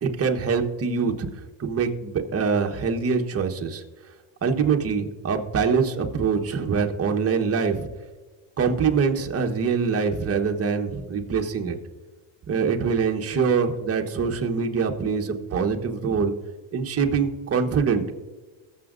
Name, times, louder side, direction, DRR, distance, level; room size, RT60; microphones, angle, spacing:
voice 1, 0.0-1.3 1.6-3.8 4.4-7.9 8.6-11.8 12.5-16.3 16.7-18.1, right 5 dB, 30° right, 3 dB, 1.2 m, -24 dB
21.0 x 7.4 x 2.6 m, 1.3 s
cardioid pair, 120°, 47 cm